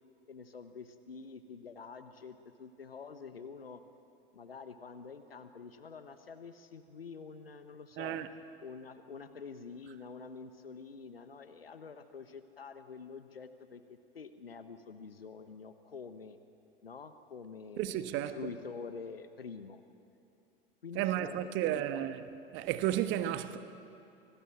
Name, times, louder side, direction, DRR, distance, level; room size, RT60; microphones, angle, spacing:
voice 1, 0.3-3.8 4.3-8.2 8.6-16.4 16.8-19.8 20.8-22.1, left 5 dB, 80° left, 1.3 m, -47 dB
voice 2, 8.0-8.3 17.8-18.4 20.9-22.2 22.5-23.6, right 12 dB, 40° right, 1.3 m, -32 dB
28.0 x 20.0 x 8.9 m
figure-of-eight pair, 80°, 29 cm